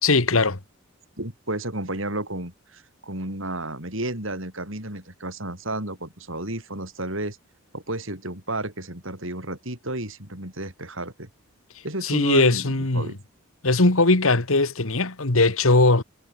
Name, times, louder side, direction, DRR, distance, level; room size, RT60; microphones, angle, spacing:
voice 1, 0.0-0.6 12.0-13.1 13.6-16.0, left 3 dB, 75° left, 1.9 m, -19 dB
voice 2, 1.2-7.4 7.7-11.3 11.8-13.2, right 1 dB, 65° right, 7.6 m, -32 dB
head